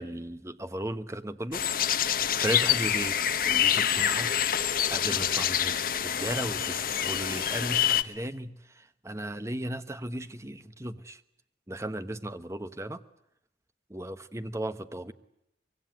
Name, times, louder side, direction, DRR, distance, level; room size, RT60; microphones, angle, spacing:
voice 1, 0.0-1.6 2.0-3.2 3.4-4.3 4.9-8.5 9.0-11.2 11.7-13.0 13.9-15.1, right 1 dB, 15° right, 1.1 m, -36 dB
sound 1, 1.5-8.0, left 9 dB, 55° left, 1.1 m, -26 dB
24.5 x 22.5 x 9.3 m
head